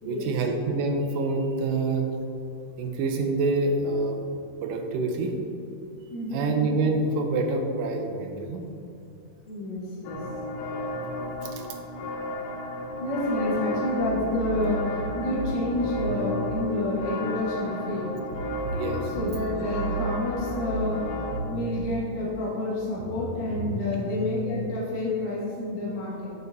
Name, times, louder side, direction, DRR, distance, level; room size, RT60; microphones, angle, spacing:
voice 1, 0.0-2.1 2.8-4.2 4.6-5.3 6.3-8.6 11.4-11.7 18.7-19.1, right 3 dB, 90° right, 3 dB, 2.4 m, -26 dB
voice 2, 6.0-6.5 9.4-10.2 13.0-18.1 19.1-21.1 21.5-26.3, left 2 dB, 55° left, -6 dB, 2.5 m, -29 dB
sound 1, 10.0-21.4, left 1 dB, 85° left, 2.4 m, -33 dB
sound 2, 14.0-16.6 18.3-21.9 23.0-24.6, right 3 dB, 60° right, 1.5 m, -34 dB
8.5 x 4.0 x 4.0 m, 2.7 s
omnidirectional pair, 3.9 m